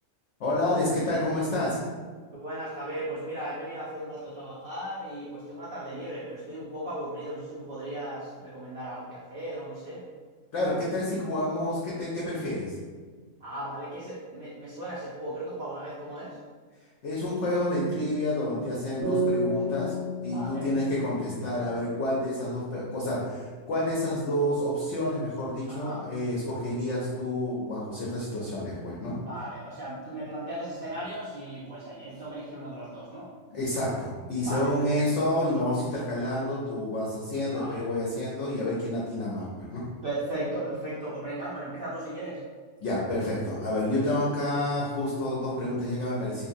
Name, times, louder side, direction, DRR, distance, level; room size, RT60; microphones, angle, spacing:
voice 1, 0.4-1.8 10.5-12.7 17.0-19.9 20.2-29.2 33.5-39.8 42.8-46.5, left 1 dB, 65° left, -5 dB, 0.8 m, -29 dB
voice 2, 2.3-10.0 13.4-16.4 20.2-20.7 25.7-26.1 29.2-33.3 34.4-35.3 37.5-37.9 40.0-42.4, right 1 dB, 80° right, -8 dB, 0.5 m, -37 dB
sound 1, 19.0-22.5, equal, 45° right, 0.7 m, -31 dB
2.8 x 2.5 x 2.5 m, 1.5 s
omnidirectional pair, 1.6 m